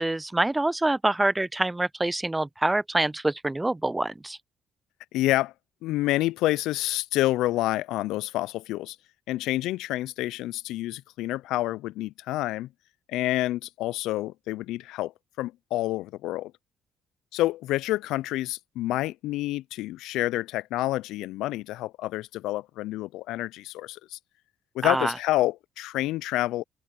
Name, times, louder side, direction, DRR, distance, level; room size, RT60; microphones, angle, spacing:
voice 1, 0.0-4.4 24.8-25.1, right 2 dB, 15° right, 0.4 m, -26 dB
voice 2, 5.1-5.5 5.8-9.0 9.3-12.7 13.1-15.1 15.4-16.5 17.3-24.2 24.7-26.6, left 16 dB, 80° left, 0.4 m, -28 dB
open air
supercardioid pair, 65°, 0 cm